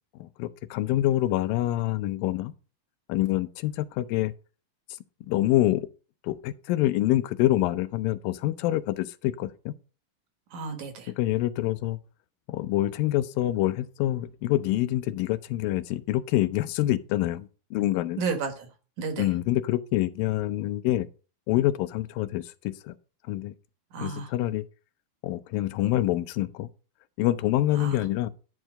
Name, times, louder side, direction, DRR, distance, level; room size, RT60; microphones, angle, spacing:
voice 1, 0.2-2.5 3.1-4.3 5.3-5.9 6.2-9.7 11.2-12.0 12.5-18.2 19.2-21.1 21.5-22.9 23.3-23.5 24.0-24.6 25.2-26.7 27.2-28.3, left 15 dB, 85° left, 2.4 m, -26 dB
voice 2, 10.5-11.1 18.2-18.7 19.0-19.3 23.9-24.3 27.8-28.0, right 5 dB, 60° right, 2.6 m, -32 dB
11.0 x 4.7 x 6.3 m
omnidirectional pair, 4.1 m